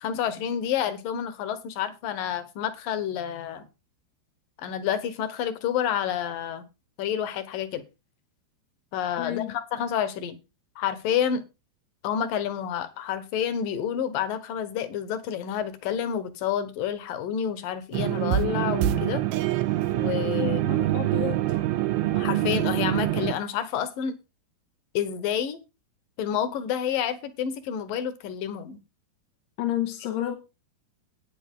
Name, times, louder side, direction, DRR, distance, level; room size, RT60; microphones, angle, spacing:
voice 1, 0.0-3.7 4.6-6.6 7.0-7.8 8.9-10.4 10.8-11.4 12.0-19.2 19.9-20.6 22.2-24.2 24.9-25.6 26.2-28.8, left 9 dB, 65° left, 2.6 m, -29 dB
voice 2, 9.2-9.5 20.4-21.7 29.6-30.4, left 12 dB, 90° left, 3.2 m, -31 dB
sound 1, 17.9-23.3, right 14 dB, 80° right, 2.5 m, -25 dB
12.0 x 9.2 x 3.7 m
omnidirectional pair, 4.7 m